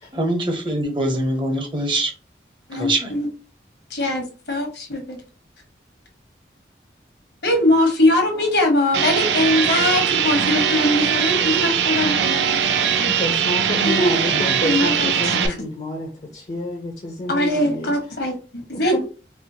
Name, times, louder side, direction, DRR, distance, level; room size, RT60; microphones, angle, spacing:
voice 1, 0.1-2.1 2.7-3.1, right 1 dB, 25° right, 0.7 m, -23 dB
voice 2, 2.7-3.3 3.9-5.2 7.4-13.1 13.8-14.1 14.6-15.3 17.3-19.0, left 1 dB, 70° left, 1.1 m, -21 dB
sound 1, 8.9-15.5, right 8 dB, 85° right, 0.4 m, -21 dB
voice 3, 13.0-18.0 18.7-18.8, left 1 dB, 40° left, 0.5 m, -29 dB
4.3 x 2.0 x 2.7 m
head